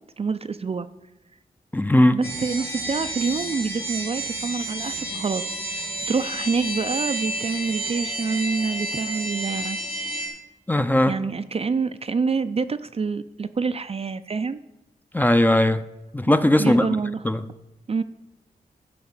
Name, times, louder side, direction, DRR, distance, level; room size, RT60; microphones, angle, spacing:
voice 1, 0.2-0.9 2.1-5.4 5.7-9.8 10.2-10.3 11.1-14.6 16.6-17.2 17.9-18.0, right 4 dB, 40° right, 0.4 m, -27 dB
voice 2, 1.7-2.2 10.7-11.2 15.1-15.8 16.1-16.9 17.2-17.5, left 1 dB, 10° left, 0.5 m, -18 dB
sound 1, 2.2-10.3, right 1 dB, 75° left, 2.8 m, -30 dB
12.0 x 4.2 x 7.2 m
cardioid pair, 70°, 16 cm